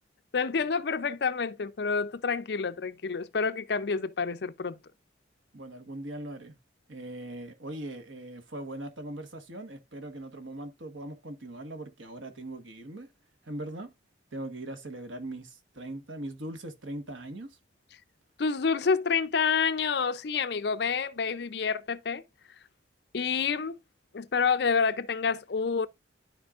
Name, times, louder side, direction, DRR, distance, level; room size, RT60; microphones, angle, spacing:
voice 1, 0.3-4.8 18.4-22.2 23.1-23.8 24.1-25.9, left 5 dB, 55° left, 0.5 m, -28 dB
voice 2, 5.5-6.6 6.9-13.1 13.4-13.9 14.3-17.5, right 1 dB, 85° right, 1.4 m, -40 dB
13.0 x 4.3 x 2.4 m
head